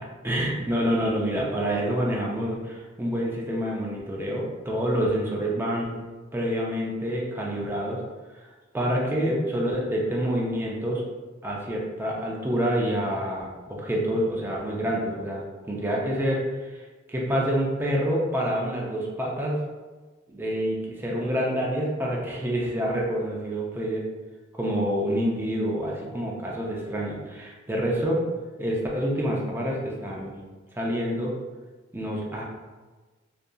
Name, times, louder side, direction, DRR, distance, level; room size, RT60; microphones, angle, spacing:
voice 1, 0.2-6.0 6.3-8.0 8.7-11.0 11.4-16.8 17.1-19.6 20.3-24.0 24.5-28.2 28.6-30.4 30.7-31.3 31.9-32.4, equal, 10° right, -3 dB, 0.4 m, -27 dB
2.7 x 2.5 x 2.3 m, 1.3 s
head